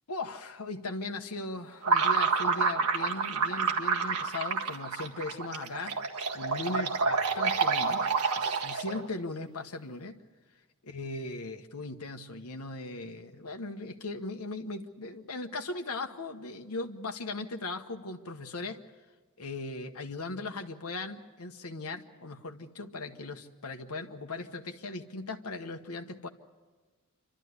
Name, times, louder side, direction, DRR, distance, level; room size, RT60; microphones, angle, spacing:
voice 1, 0.1-8.1 8.4-10.2 10.9-18.8 19.4-26.3, left 2 dB, 80° left, 4 dB, 1.1 m, -38 dB
sound 1, 1.8-9.1, right 5 dB, 85° right, 1.7 m, -28 dB
28.0 x 12.5 x 9.5 m, 1.4 s
head